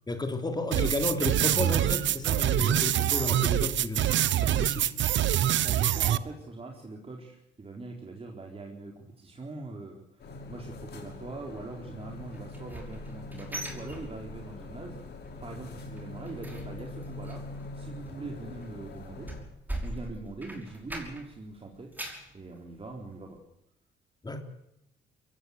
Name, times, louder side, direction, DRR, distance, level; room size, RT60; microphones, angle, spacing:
voice 1, 0.1-4.9 24.2-24.4, left 2 dB, 20° left, 5 dB, 3.4 m, -32 dB
sound 1, 0.7-6.2, right 12 dB, 70° right, 1.0 m, -25 dB
voice 2, 5.6-10.0 10.5-15.0 15.4-19.5 19.8-21.9 22.3-23.4, right 3 dB, 30° right, 1 dB, 4.1 m, -42 dB
sound 2, 10.2-19.4, left 2 dB, 55° left, 5.9 m, -43 dB
sound 3, 12.3-14.7 15.0-15.3 15.6-21.4 21.7-22.3 22.8-22.9 23.4-23.5, right 1 dB, 10° right, 6.0 m, -41 dB
23.0 x 17.0 x 8.2 m, 0.84 s
cardioid pair, 90°, 20 cm